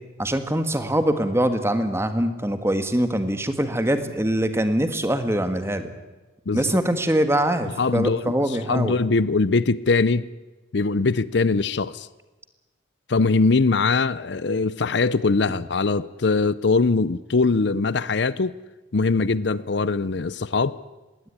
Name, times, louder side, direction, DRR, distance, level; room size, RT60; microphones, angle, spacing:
voice 1, 0.2-5.9 6.5-8.9, right 1 dB, 15° right, 1.6 m, -23 dB
voice 2, 7.8-8.4 8.7-10.3 10.7-12.1 13.1-18.6 18.9-20.8, left 3 dB, 60° left, 0.6 m, -21 dB
20.5 x 17.0 x 9.9 m
head